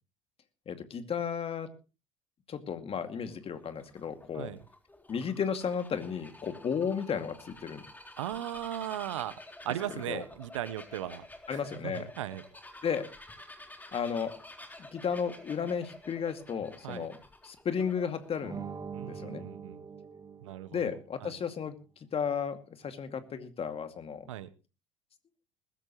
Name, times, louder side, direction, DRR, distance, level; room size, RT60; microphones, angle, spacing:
voice 1, 0.7-1.7 2.5-4.5 5.1-7.8 9.9-10.2 11.5-12.1 12.8-13.1 13.9-14.3 14.8-17.2 17.4-18.6 19.1-19.4 20.7-21.8 22.1-24.3, left 7 dB, 35° left, 8 dB, 2.4 m, -34 dB
Bird vocalization bird call bird song, 3.3-18.4, left 2 dB, 10° left, 4.0 m, -50 dB
voice 2, 8.2-9.4 9.6-11.3 11.5-12.4 16.8-17.1 18.9-19.8 20.4-21.0 21.2-21.3 24.3-24.5, right 12 dB, 75° right, 16 dB, 1.0 m, -37 dB
sound 1, 18.4-21.1, right 6 dB, 25° right, 1.8 m, -43 dB
21.0 x 13.5 x 3.1 m, 0.33 s
hypercardioid pair, 65°, 16 cm